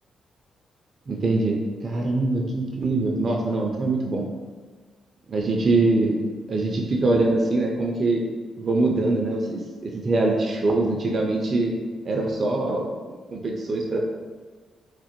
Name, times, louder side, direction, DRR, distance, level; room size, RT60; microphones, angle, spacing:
voice 1, 1.1-4.2 5.3-6.2 6.5-8.2 8.6-11.7 12.1-14.0, right 2 dB, 50° right, -1 dB, 0.5 m, -23 dB
3.2 x 2.0 x 3.0 m, 1.4 s
supercardioid pair, 50°, 0 cm